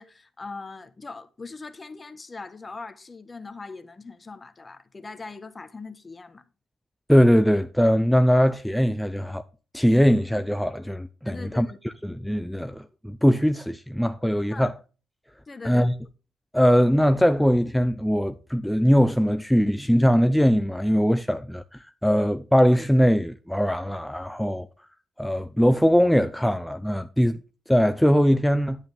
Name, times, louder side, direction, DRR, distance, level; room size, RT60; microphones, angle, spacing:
voice 1, 0.0-6.4 11.2-11.8 14.5-14.7 15.5-15.9, left 3 dB, 30° left, 1.3 m, -40 dB
voice 2, 7.1-9.4 9.7-11.7 12.0-14.7 15.6-15.9 16.5-24.7 25.2-27.4 27.7-28.8, equal, 5° left, 0.6 m, -21 dB
10.5 x 8.7 x 3.5 m
supercardioid pair, 60°, 0 cm